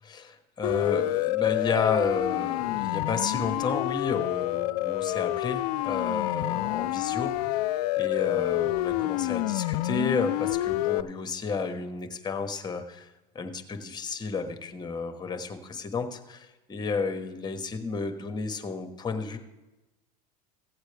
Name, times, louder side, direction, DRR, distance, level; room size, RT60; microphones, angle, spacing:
voice 1, 0.0-7.6 8.0-13.1 13.3-19.4, left 4 dB, 20° left, 7 dB, 1.1 m, -32 dB
Siren, 0.6-11.0, left 16 dB, 80° left, 0.4 m, -28 dB
15.5 x 8.1 x 3.4 m, 1.1 s
supercardioid pair, 115°, 20 cm